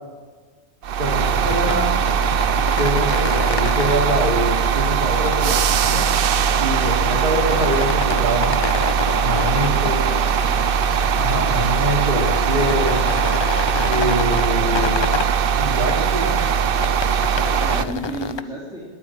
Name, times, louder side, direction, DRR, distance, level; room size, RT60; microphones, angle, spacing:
sound 1, 0.8-17.9, right 7 dB, 60° right, 0.8 m, -20 dB
voice 1, 1.0-1.9 2.8-6.0 6.6-8.6 9.2-10.1 11.2-13.0 13.8-15.2 15.6-16.3, equal, 40° right, -1 dB, 3.2 m, -24 dB
sound 2, 1.1-18.4, left 5 dB, 35° left, 0.4 m, -31 dB
voice 2, 9.5-10.5 17.5-18.8, right 1 dB, 5° right, -7 dB, 3.4 m, -33 dB
21.0 x 9.2 x 7.4 m, 1.5 s
omnidirectional pair, 1.2 m